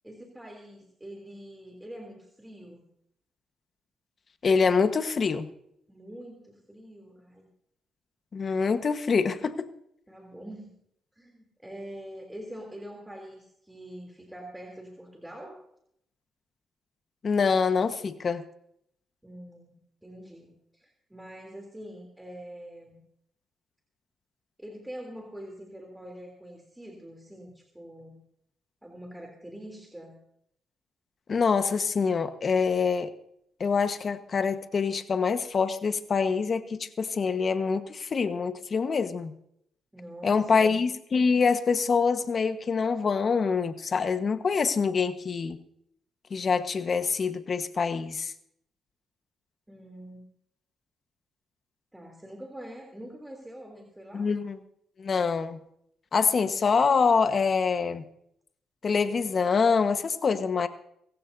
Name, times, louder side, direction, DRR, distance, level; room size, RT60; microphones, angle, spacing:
voice 1, 0.0-2.8 5.9-7.5 10.1-10.7 11.1-15.6 19.2-19.8 20.0-23.0 24.6-28.2 28.8-30.2 39.9-40.8 49.7-50.3 51.9-54.3, right 1 dB, 10° right, 0 dB, 3.2 m, -44 dB
voice 2, 4.4-5.5 8.3-9.7 17.2-18.4 31.3-33.1 33.6-39.3 40.2-45.6 46.3-48.3 54.1-54.6 55.0-55.6 56.1-58.0 58.8-60.7, left 5 dB, 45° left, 9 dB, 1.3 m, -25 dB
25.5 x 15.0 x 2.7 m, 0.72 s
cardioid pair, 90°, 0 cm